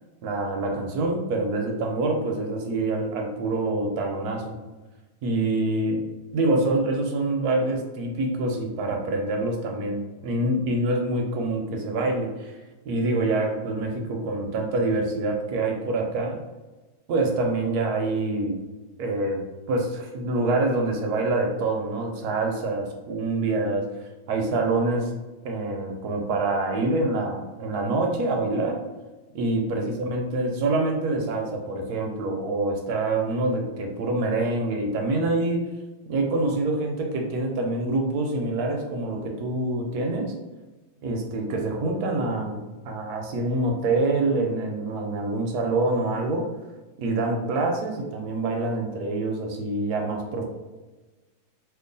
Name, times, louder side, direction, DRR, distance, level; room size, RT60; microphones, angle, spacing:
voice 1, 0.2-4.4 5.2-6.0 6.3-12.5 12.9-16.4 17.1-18.6 19.0-19.4 19.7-23.9 24.3-25.1 25.4-28.8 29.3-35.7 36.1-40.3 41.0-46.5 47.0-50.4, right 2 dB, 70° right, 2 dB, 0.9 m, -26 dB
3.0 x 2.4 x 3.8 m, 1.2 s
omnidirectional pair, 2.0 m